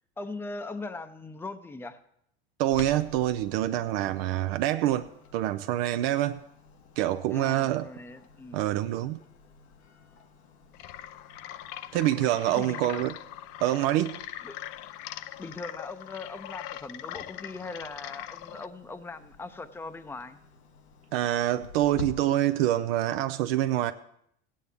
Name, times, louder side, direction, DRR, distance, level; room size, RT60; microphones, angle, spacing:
voice 1, 0.2-2.0 7.3-8.6 12.5-13.0 14.4-14.6 15.4-20.4, left 3 dB, 5° left, 10 dB, 0.6 m, -40 dB
voice 2, 2.6-6.4 7.0-7.9 8.5-9.2 11.9-13.1 13.6-14.2 21.1-23.9, right 13 dB, 65° right, 9 dB, 0.5 m, -26 dB
Clock, 2.7-22.1, left 3 dB, 90° left, 1.2 m, -50 dB
sound 1, 10.7-18.7, left 13 dB, 55° left, 0.5 m, -42 dB
17.0 x 8.5 x 3.5 m, 0.71 s
hypercardioid pair, 95°, 32 cm